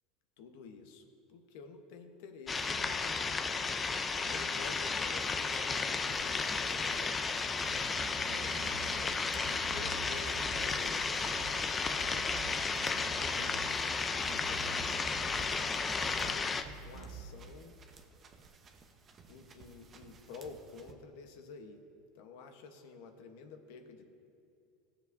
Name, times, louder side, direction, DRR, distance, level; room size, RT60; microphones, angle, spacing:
voice 1, 0.4-3.7 4.2-7.5 8.0-12.4 12.8-16.5 16.8-17.8 19.3-21.8 22.1-24.1, left 4 dB, 75° left, 5 dB, 1.1 m, -50 dB
sound 1, 2.5-16.6, left 4 dB, 25° left, 0.5 m, -33 dB
sound 2, 4.4-20.9, right 4 dB, 35° right, 0.9 m, -56 dB
sound 3, 7.6-9.2 9.4-10.7 11.2-11.6 11.8-14.0 14.2-15.5 16.0-16.4 16.6-17.2, right 3 dB, 65° right, 1.0 m, -47 dB
17.0 x 7.1 x 2.7 m, 2.6 s
supercardioid pair, 105°, 0 cm